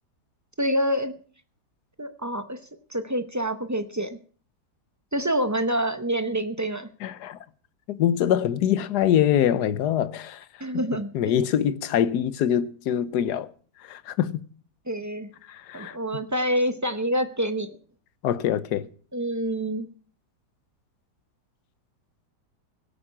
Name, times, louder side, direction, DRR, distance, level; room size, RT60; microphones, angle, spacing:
voice 1, 0.6-1.1 2.0-2.6 2.9-4.2 5.1-6.9 10.6-11.4 14.9-15.3 15.7-17.8 19.1-19.9, equal, 25° right, 0.4 m, -27 dB
voice 2, 7.0-7.4 7.9-10.4 11.1-13.5 13.8-14.4 15.5-16.0 18.2-18.9, left 10 dB, 75° left, 1.3 m, -24 dB
17.5 x 8.7 x 5.8 m
omnidirectional pair, 1.8 m